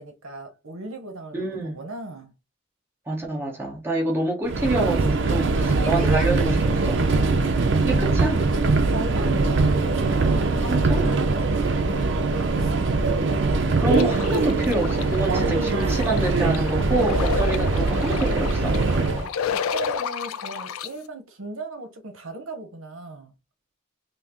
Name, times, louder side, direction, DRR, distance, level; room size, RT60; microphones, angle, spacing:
voice 1, 0.0-2.3 5.7-6.3 8.9-12.9 17.3-17.7 19.1-23.3, right 2 dB, 75° right, 0.9 m, -37 dB
voice 2, 1.3-1.8 3.1-7.0 7.6-8.4 10.7-11.1 13.8-18.8, right 2 dB, 10° right, 0.9 m, -27 dB
Subway metro underground, 4.5-19.3, right 3 dB, 60° right, 0.5 m, -22 dB
sound 1, 13.9-20.9, left 7 dB, 85° left, 0.4 m, -31 dB
5.5 x 2.0 x 2.9 m
head